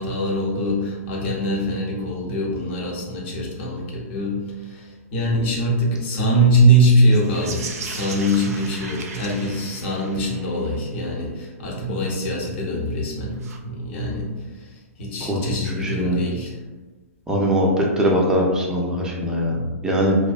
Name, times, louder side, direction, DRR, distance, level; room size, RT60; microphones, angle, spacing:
voice 1, 0.0-14.7 15.0-16.6, right 1 dB, 50° left, -2 dB, 0.8 m, -22 dB
sound 1, 7.0-10.5 13.4-13.6, right 4 dB, 75° right, 0.4 m, -36 dB
voice 2, 15.6-16.2 17.3-20.2, equal, 10° right, -2 dB, 0.5 m, -21 dB
2.6 x 2.1 x 2.4 m, 1.3 s
hypercardioid pair, 125°, 8 cm